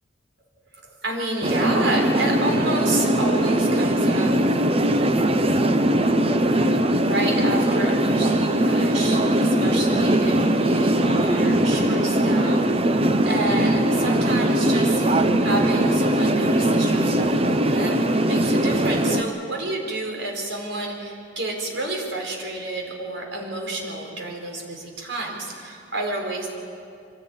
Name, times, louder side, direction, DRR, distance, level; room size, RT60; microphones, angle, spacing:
voice 1, 0.7-4.3 4.6-4.9 6.9-12.6 12.9-26.5, right 2 dB, 75° right, 1 dB, 4.5 m, -30 dB
sound 1, 1.4-19.2, right 1 dB, 30° right, 0.9 m, -20 dB
24.0 x 17.0 x 9.0 m, 2.4 s
head